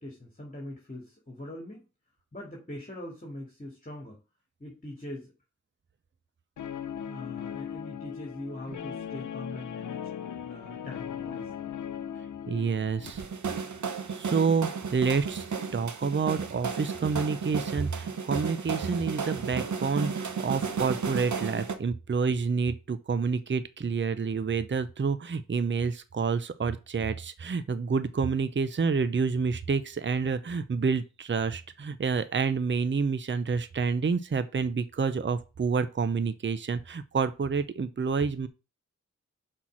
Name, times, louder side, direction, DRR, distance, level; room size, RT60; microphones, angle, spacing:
voice 1, 0.0-1.9 2.3-4.2 4.6-5.3 7.1-10.1 10.5-11.7, left 1 dB, 25° left, 2.2 m, -42 dB
Guitar, 6.6-13.1, left 8 dB, 90° left, 0.5 m, -38 dB
voice 2, 12.5-13.2 14.1-15.5 15.7-38.5, right 5 dB, 40° right, 0.6 m, -28 dB
sound 1, 13.1-21.8, right 5 dB, 75° right, 0.9 m, -33 dB
5.7 x 4.4 x 6.2 m
cardioid pair, 45°, 29 cm